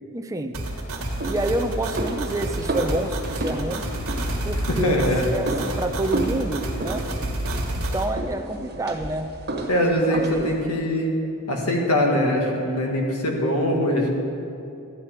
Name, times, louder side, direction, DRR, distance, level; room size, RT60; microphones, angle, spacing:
voice 1, 0.1-0.6 1.2-3.9 4.4-7.0 7.8-9.3 10.1-10.5, right 1 dB, 15° right, 5 dB, 0.5 m, -28 dB
sound 1, 0.5-8.0, right 1 dB, 70° right, 1.6 m, -29 dB
sound 2, 0.9-10.6, right 1 dB, 45° right, 1.5 m, -32 dB
voice 2, 4.7-5.3 9.7-11.1 11.5-14.1, equal, 85° left, 0 dB, 1.7 m, -22 dB
12.5 x 9.9 x 4.4 m, 2.7 s
head